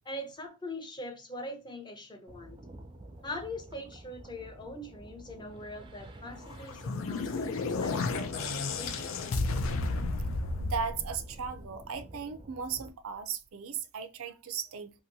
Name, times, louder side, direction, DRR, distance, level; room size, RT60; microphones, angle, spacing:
voice 1, 0.1-2.6 3.2-9.2, left 1 dB, 20° left, 0.6 m, -42 dB
sound 1, 2.3-12.9, right 1 dB, 25° right, 0.4 m, -49 dB
sound 2, 6.5-11.8, left 3 dB, 65° left, 0.4 m, -32 dB
voice 2, 10.6-15.0, right 6 dB, 80° right, 0.5 m, -37 dB
2.8 x 2.6 x 2.6 m
head